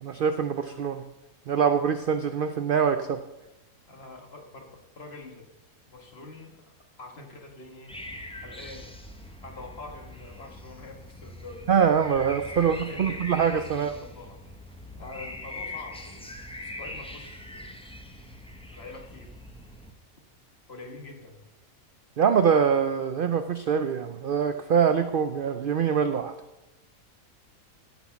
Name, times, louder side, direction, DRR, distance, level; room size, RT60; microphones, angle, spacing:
voice 1, 0.0-1.0 1.5-3.2 11.7-13.9 22.2-26.3, right 7 dB, 65° right, 9 dB, 0.5 m, -24 dB
voice 2, 3.9-5.5 5.9-7.9 8.4-8.9 9.4-11.7 12.5-13.2 13.7-14.5 14.9-16.3 16.6-17.7 18.7-19.3 20.7-21.5, left 3 dB, 45° left, 3 dB, 1.8 m, -45 dB
sound 1, 7.9-19.9, left 1 dB, 5° left, 0.8 m, -42 dB
16.0 x 6.1 x 5.8 m, 1.0 s
omnidirectional pair, 1.5 m